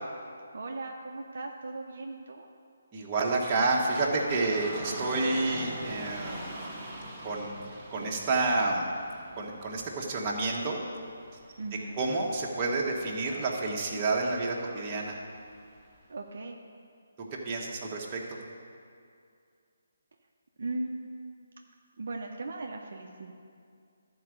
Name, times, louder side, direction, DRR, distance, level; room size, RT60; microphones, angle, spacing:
voice 1, 0.5-2.5 11.6-11.9 16.1-16.6 20.6-21.5 22.0-23.3, right 2 dB, 60° right, 1 dB, 0.7 m, -38 dB
voice 2, 2.9-6.5 7.2-7.5 7.9-8.9 9.4-10.8 12.0-15.2 17.2-18.2, right 3 dB, 25° right, -3 dB, 1.4 m, -29 dB
Dog / Rain, 3.8-15.9, right 1 dB, 10° right, 1.7 m, -44 dB
12.5 x 4.7 x 6.4 m, 2.3 s
figure-of-eight pair, 150°, 0 cm